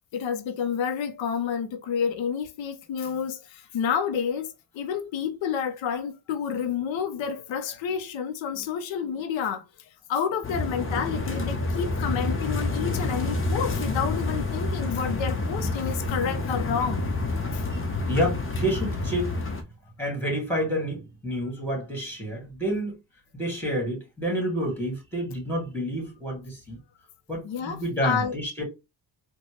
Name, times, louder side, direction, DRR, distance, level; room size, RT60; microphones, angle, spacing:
voice 1, 0.1-17.1 17.5-17.7 27.4-28.4, left 7 dB, 90° left, 0.7 m, -29 dB
sound 1, 10.4-19.6, left 2 dB, 30° left, 0.8 m, -28 dB
voice 2, 18.0-19.4 20.0-23.0 23.3-26.8 27.3-28.6, equal, 5° left, 1.9 m, -29 dB
4.2 x 2.2 x 3.1 m
cardioid pair, 115°, 45 cm